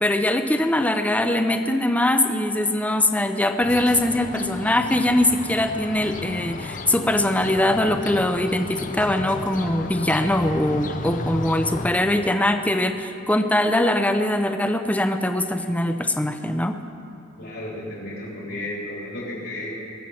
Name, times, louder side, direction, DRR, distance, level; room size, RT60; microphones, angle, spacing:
voice 1, 0.0-16.8, left 1 dB, 5° left, 7 dB, 0.6 m, -22 dB
sound 1, 3.6-11.9, left 2 dB, 40° left, 0.7 m, -34 dB
voice 2, 17.4-19.7, left 1 dB, 65° left, -4 dB, 3.3 m, -33 dB
22.0 x 7.5 x 6.3 m, 2.6 s
head